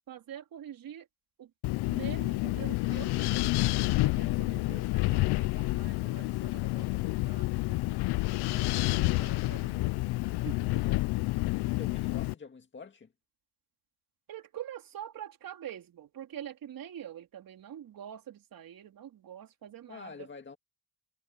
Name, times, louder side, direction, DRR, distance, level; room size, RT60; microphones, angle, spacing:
voice 1, 0.1-1.1 1.4-1.5 1.9-3.5 4.0-7.8 8.5-9.9 10.4-10.9 14.3-20.3, right 10 dB, 60° right, 4.1 m, -45 dB
Wind, 1.6-12.3, left 21 dB, 85° left, 0.6 m, -29 dB
voice 2, 10.7-11.0 11.7-13.1 19.9-20.6, left 5 dB, 30° left, 2.0 m, -46 dB
cardioid pair, 100°, 38 cm